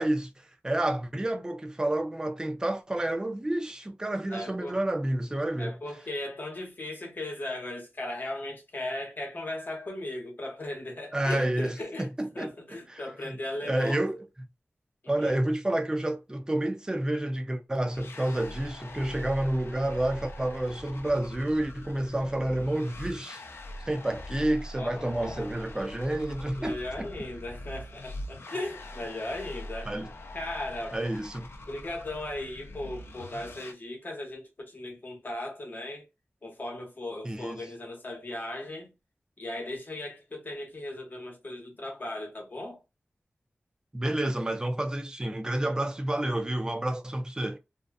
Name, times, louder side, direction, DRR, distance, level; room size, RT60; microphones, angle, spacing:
voice 1, 0.0-5.8 11.1-12.5 12.9-13.3 13.6-14.2 15.1-23.4 23.9-27.1 29.9-30.1 30.9-31.5 37.2-37.6 43.9-47.6, right 1 dB, 20° right, 0.5 m, -29 dB
voice 2, 4.3-4.8 5.6-14.0 15.0-15.4 24.7-25.5 26.6-29.9 30.3-31.0 31.7-36.1 36.4-38.9 39.4-42.8, left 1 dB, 50° left, 1.0 m, -37 dB
sound 1, 17.9-33.7, left 1 dB, 80° left, 0.4 m, -43 dB
2.6 x 2.3 x 2.3 m
wide cardioid pair, 90°, 4 cm